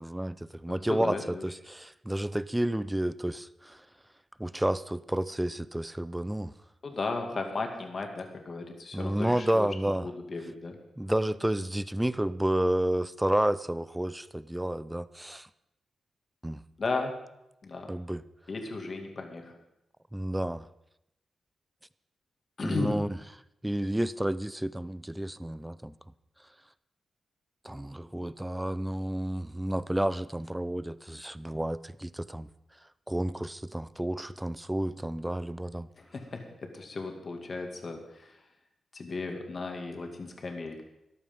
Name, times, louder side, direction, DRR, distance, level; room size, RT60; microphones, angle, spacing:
voice 1, 0.0-3.8 4.4-6.5 8.9-10.1 11.0-15.5 16.4-16.6 17.9-18.2 20.1-20.7 22.6-23.1 23.6-25.9 27.6-32.5 33.1-35.9, right 1 dB, 10° right, 17 dB, 0.5 m, -30 dB
voice 2, 0.7-1.4 6.8-10.8 16.8-17.1 17.6-17.9 18.5-19.6 22.6-23.1 36.0-38.4 38.9-40.8, left 3 dB, 45° left, 4 dB, 2.4 m, -35 dB
14.0 x 11.5 x 5.5 m, 0.85 s
cardioid pair, 80°, 0 cm